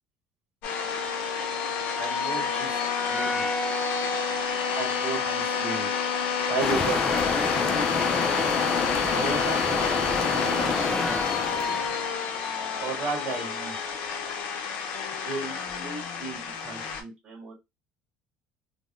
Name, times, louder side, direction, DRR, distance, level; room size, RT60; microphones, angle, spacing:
sound 1, 0.6-17.0, left 5 dB, 65° left, 0.6 m, -29 dB
voice 1, 1.9-2.8 3.1-3.4 4.7-5.9 6.5-8.0 9.1-10.7 11.0-11.2 12.8-13.7 15.2-17.5, right 3 dB, 50° right, -1 dB, 1.5 m, -34 dB
sound 2, 6.6-12.1, left 4 dB, 20° left, 0.3 m, -28 dB
3.5 x 2.0 x 2.4 m, 0.22 s
cardioid pair, 165°, 3 cm